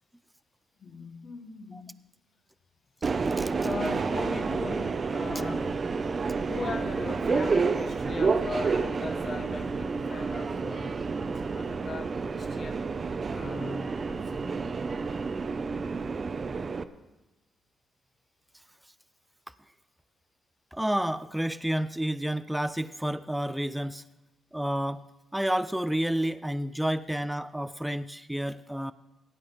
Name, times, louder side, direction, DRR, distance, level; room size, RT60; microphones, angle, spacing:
voice 1, 0.8-2.1 3.6-5.8 6.5-11.0 11.3-12.9 13.3-14.6, left 4 dB, 55° left, 5 dB, 1.6 m, -39 dB
Subway metro underground, 3.0-16.8, right 4 dB, 45° right, 0.7 m, -30 dB
voice 2, 20.7-24.0 24.5-25.0 25.3-28.9, right 1 dB, 5° right, 13 dB, 0.5 m, -30 dB
17.5 x 9.2 x 4.2 m, 1.1 s
hypercardioid pair, 50°, 0 cm